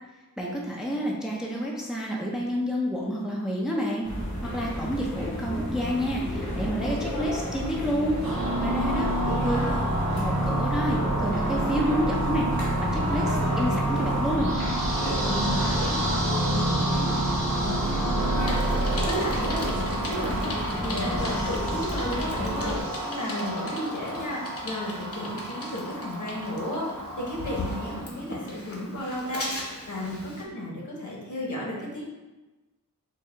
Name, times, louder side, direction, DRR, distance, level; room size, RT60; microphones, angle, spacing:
voice 1, 0.4-4.1 4.5-8.2 8.6-9.1 9.4-9.6 10.1-12.5 12.8-14.6, equal, ahead, -3 dB, 0.5 m, -29 dB
sound 1, 4.0-22.8, equal, 85° left, 1.3 m, -32 dB
sound 2, 8.2-28.0, right 1 dB, 85° right, 0.9 m, -29 dB
voice 2, 9.0-9.9 15.2-32.0, equal, 60° left, -3 dB, 1.1 m, -34 dB
Bicycle, 18.4-30.4, left 1 dB, 40° left, 0.8 m, -39 dB
4.5 x 2.3 x 3.4 m, 1.1 s
wide cardioid pair, 95°, 34 cm